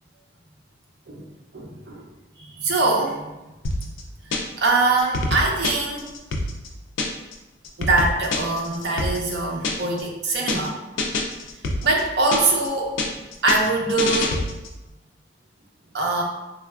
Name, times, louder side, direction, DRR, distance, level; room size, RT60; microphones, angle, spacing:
voice 1, 1.5-2.0 2.4-3.3 4.3-6.1 7.8-10.8 11.8-13.0 13.4-14.4 15.9-16.2, right 3 dB, 60° right, -1 dB, 0.5 m, -23 dB
sound 1, 3.6-4.7 5.0-7.3 7.6-10.0 10.3-10.7 11.0-12.7 13.0-14.8, left 2 dB, 80° left, 0.4 m, -27 dB
3.2 x 2.4 x 2.3 m, 1.0 s
head